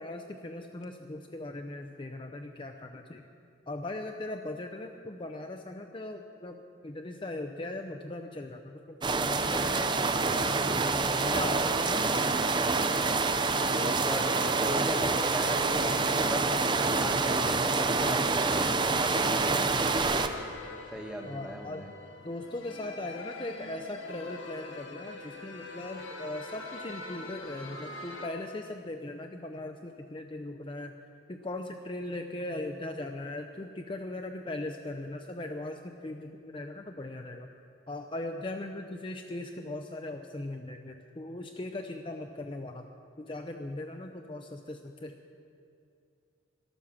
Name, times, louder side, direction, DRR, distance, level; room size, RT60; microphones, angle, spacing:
voice 1, 0.0-3.3 3.7-10.8 11.2-12.0 21.3-21.9 22.2-31.0 31.3-37.5 37.9-42.9 43.2-45.2, left 2 dB, 25° left, 5 dB, 0.5 m, -39 dB
sound 1, 9.0-20.3, right 3 dB, 20° right, 0.5 m, -27 dB
sound 2, 11.1-28.3, left 2 dB, 80° left, 1.5 m, -44 dB
voice 2, 13.7-16.5 16.8-20.5 20.9-21.9, equal, 5° right, 2 dB, 1.1 m, -38 dB
12.5 x 12.0 x 7.2 m, 2.5 s
head